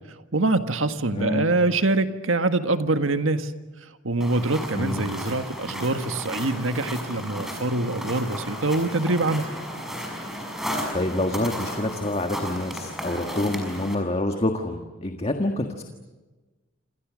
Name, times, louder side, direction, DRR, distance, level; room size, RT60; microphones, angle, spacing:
voice 1, 0.3-3.5 4.0-9.5, right 2 dB, 80° right, 8 dB, 1.7 m, -24 dB
voice 2, 1.1-1.5 4.7-5.2 10.9-15.8, left 1 dB, 30° left, 5 dB, 1.7 m, -27 dB
sound 1, 4.2-14.0, equal, ahead, 5.9 m, -34 dB
28.5 x 27.5 x 6.4 m, 1.2 s
head